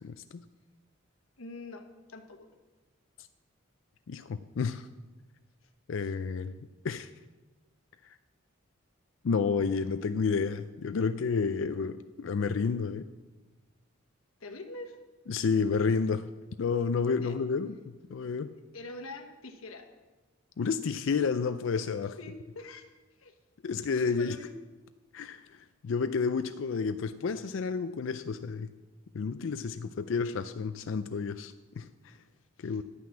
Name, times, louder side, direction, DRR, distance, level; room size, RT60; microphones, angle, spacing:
voice 1, 0.0-0.4 4.1-4.9 5.9-6.6 6.8-7.1 9.2-13.1 15.3-16.3 16.6-17.8 18.1-18.5 20.6-22.2 23.6-24.4 25.1-28.7 29.1-32.2 32.6-32.8, left 5 dB, 70° left, 11 dB, 0.4 m, -30 dB
voice 2, 1.4-2.5 6.0-6.1 14.4-15.0 17.2-17.4 18.7-19.9 22.2-22.9 23.2-23.3 24.2-24.5 32.6-32.8, left 2 dB, 90° left, 6 dB, 1.2 m, -44 dB
11.0 x 6.0 x 8.5 m, 1.2 s
head